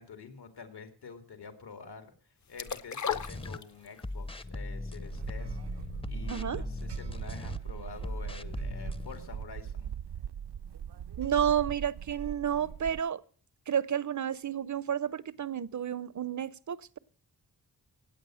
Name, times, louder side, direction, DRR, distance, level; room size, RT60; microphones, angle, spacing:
voice 1, 0.0-2.1 2.5-9.9, left 5 dB, 80° left, 2.4 m, -47 dB
sound 1, 2.6-4.1 4.5-4.6, left 7 dB, 50° left, 0.7 m, -34 dB
sound 2, 3.1-3.6 4.0-7.6 8.0-9.2, left 2 dB, 15° left, 0.6 m, -39 dB
sound 3, 5.1-13.0, right 9 dB, 90° right, 0.7 m, -40 dB
voice 2, 6.3-6.6 11.2-13.2 13.7-17.0, right 9 dB, 50° right, 0.6 m, -31 dB
17.0 x 8.8 x 6.2 m
wide cardioid pair, 135°, 39 cm